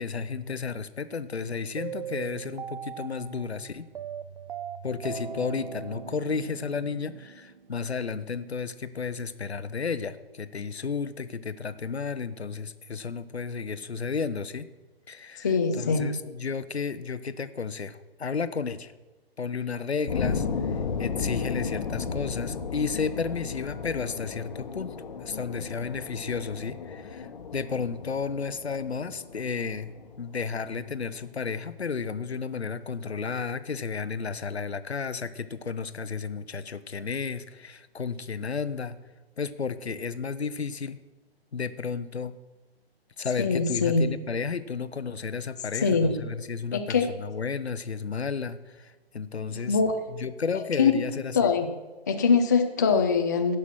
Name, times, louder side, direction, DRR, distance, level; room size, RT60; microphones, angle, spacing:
voice 1, 0.0-3.9 4.8-14.7 15.1-18.9 19.4-25.0 25.2-39.0 39.4-41.0 41.5-42.3 43.2-49.8 50.1-51.5, left 5 dB, 75° left, 13 dB, 0.7 m, -33 dB
sound 1, 1.8-7.9, right 7 dB, 50° right, 0.7 m, -39 dB
voice 2, 15.4-16.1 43.4-44.1 45.7-46.1 46.7-47.1 49.7-49.9 50.8-50.9 51.3-51.7 52.1-53.6, left 5 dB, 20° left, 5 dB, 0.4 m, -22 dB
sound 2, 20.1-30.8, left 5 dB, 45° left, 1.1 m, -34 dB
15.5 x 6.0 x 5.9 m, 1.2 s
figure-of-eight pair, 130°, 32 cm